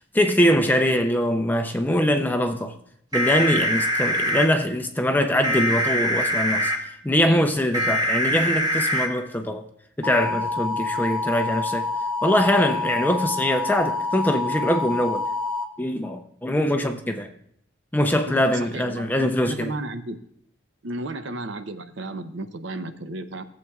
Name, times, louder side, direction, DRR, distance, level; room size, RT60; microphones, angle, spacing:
voice 1, 0.0-2.7 3.1-6.7 7.0-9.7 10.0-11.9 12.2-15.3 15.8-17.3 17.9-19.7, equal, 10° left, 0.5 m, -22 dB
sound 1, 3.1-4.5 5.4-6.8 7.7-9.1 10.0-15.6, left 1 dB, 20° right, 1.0 m, -25 dB
voice 2, 18.3-20.2 20.8-23.5, right 2 dB, 65° right, 0.6 m, -34 dB
16.5 x 7.6 x 2.3 m
head